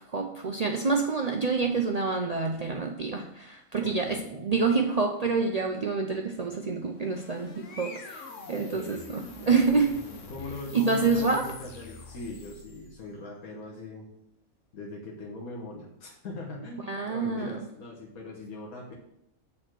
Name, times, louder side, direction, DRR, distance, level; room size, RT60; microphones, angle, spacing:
voice 1, 0.1-10.0 10.7-11.4 16.9-17.5, right 4 dB, 70° right, 2 dB, 0.3 m, -27 dB
voice 2, 3.8-4.3 10.3-14.1 14.7-18.9, left 2 dB, 85° left, -2 dB, 1.6 m, -40 dB
sound 1, 6.8-13.1, left 3 dB, 60° left, 1.4 m, -44 dB
6.6 x 4.3 x 6.1 m, 0.79 s
omnidirectional pair, 1.5 m